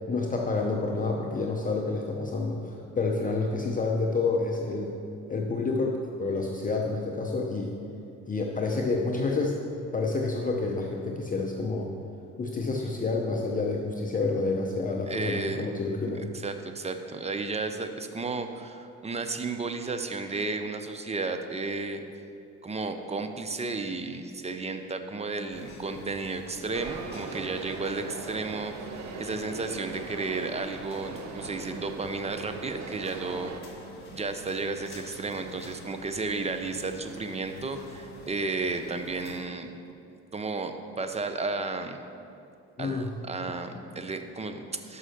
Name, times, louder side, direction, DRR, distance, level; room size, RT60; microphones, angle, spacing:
voice 1, 0.1-4.9 5.3-7.7 8.3-9.6 9.9-11.9 12.4-16.3 42.8-43.1, left 3 dB, 25° left, 0 dB, 0.7 m, -29 dB
voice 2, 15.1-15.6 16.4-22.0 22.6-28.7 29.2-33.5 34.1-39.7 40.3-42.0 42.8-45.0, right 3 dB, 20° right, 7 dB, 0.6 m, -33 dB
sound 1, 25.5-39.4, equal, 45° left, 1.7 m, -46 dB
sound 2, 26.7-33.6, right 4 dB, 65° right, 0.7 m, -40 dB
6.1 x 5.6 x 6.4 m, 2.6 s
cardioid pair, 90°, 30 cm